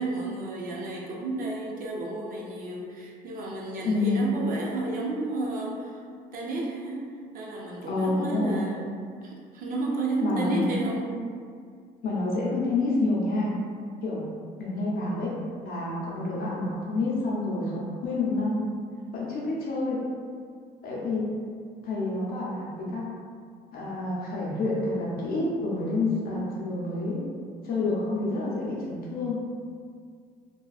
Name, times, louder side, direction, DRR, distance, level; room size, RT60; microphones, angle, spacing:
voice 1, 0.0-6.0 6.3-7.1 7.3-8.9 9.2-11.2, right 2 dB, 55° right, -3 dB, 0.5 m, -32 dB
voice 2, 3.8-4.2 7.9-8.7 10.2-10.6 12.0-13.6 14.0-14.2 14.6-15.3 15.6-18.6 19.1-20.0 20.8-21.3 21.8-23.1 23.7-27.3 27.6-29.4, left 2 dB, 60° left, -5 dB, 0.7 m, -28 dB
2.4 x 2.3 x 2.3 m, 2.1 s
cardioid pair, 110°, 17 cm